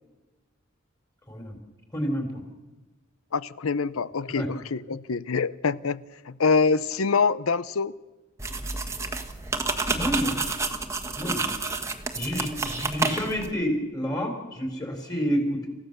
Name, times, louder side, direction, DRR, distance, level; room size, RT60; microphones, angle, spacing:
voice 1, 1.9-2.4 4.3-4.5 9.9-10.4 11.2-11.5 12.1-15.7, equal, 20° left, 4.2 m, -29 dB
voice 2, 3.3-7.9, left 4 dB, 90° left, 0.7 m, -25 dB
sound 1, 8.4-13.5, right 3 dB, 15° right, 1.4 m, -29 dB
28.0 x 15.0 x 6.8 m
head